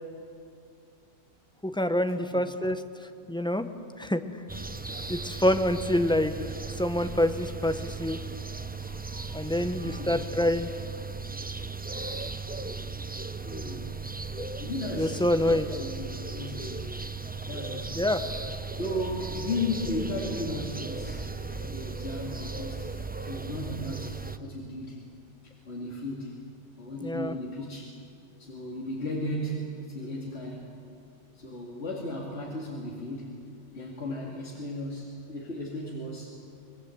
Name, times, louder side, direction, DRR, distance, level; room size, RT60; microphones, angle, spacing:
voice 1, 1.6-2.8 3.3-3.7 4.0-4.2 5.1-6.3 6.8-8.2 9.3-10.7 14.4-14.5 14.9-15.7 18.0-18.2 27.0-27.3, left 1 dB, 5° left, 8 dB, 0.9 m, -26 dB
sound 1, 4.5-24.4, right 4 dB, 15° right, 0.4 m, -37 dB
voice 2, 9.5-10.3 13.4-14.2 14.6-17.0 17.5-18.0 18.7-21.3 21.6-22.9 23.2-25.0 25.4-26.4 26.8-28.0 28.4-30.7 31.3-33.4 33.7-36.3, left 1 dB, 60° left, -3 dB, 2.8 m, -35 dB
25.5 x 21.0 x 7.9 m, 2.5 s
omnidirectional pair, 1.2 m